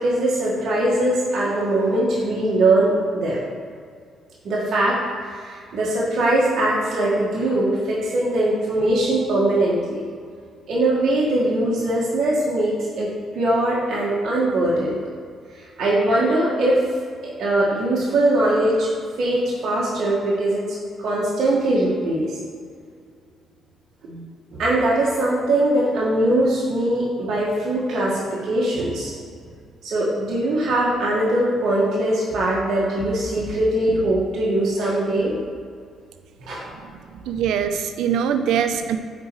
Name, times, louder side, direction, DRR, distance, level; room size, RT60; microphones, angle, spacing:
voice 1, 0.0-3.4 4.4-5.0 5.2-10.0 10.7-13.1 13.3-15.0 15.5-16.8 17.2-18.9 19.2-20.6 21.0-22.4 24.0-24.2 24.5-29.1 29.8-35.3 36.4-36.7, right 1 dB, 65° right, -6 dB, 1.6 m, -21 dB
voice 2, 36.8-39.0, right 8 dB, 85° right, 9 dB, 0.5 m, -23 dB
9.3 x 4.3 x 4.7 m, 2.2 s
cardioid pair, 90°, 0 cm